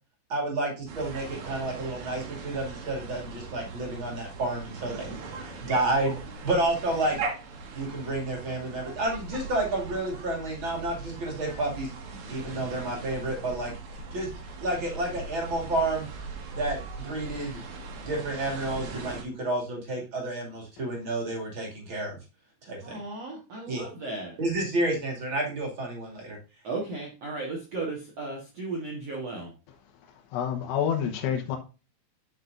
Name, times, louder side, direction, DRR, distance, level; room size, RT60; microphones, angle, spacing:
voice 1, 0.3-5.1 5.6-6.2 6.4-7.2 7.7-11.9 12.3-13.8 14.1-14.3 14.6-16.1 16.5-17.6 18.0-22.2 22.6-23.0 23.7-23.9 24.4-26.4, right 2 dB, 35° right, -1 dB, 2.2 m, -30 dB
sound 1, 0.9-19.2, right 3 dB, 60° right, 2.2 m, -40 dB
voice 2, 22.8-24.3 26.6-29.5, right 3 dB, 80° right, -2 dB, 1.4 m, -35 dB
voice 3, 30.3-31.6, left 8 dB, 80° left, 1 dB, 3.4 m, -28 dB
10.5 x 6.2 x 2.6 m, 0.31 s
omnidirectional pair, 5.5 m